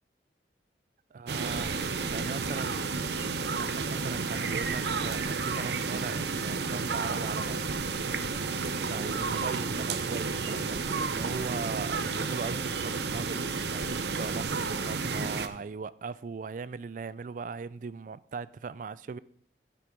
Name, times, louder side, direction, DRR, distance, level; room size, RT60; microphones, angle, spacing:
voice 1, 1.1-2.8 3.4-7.8 8.9-19.2, right 5 dB, 45° right, 0.3 m, -39 dB
sound 1, 1.3-15.5, right 4 dB, 70° right, 0.7 m, -31 dB
13.5 x 6.1 x 4.6 m
head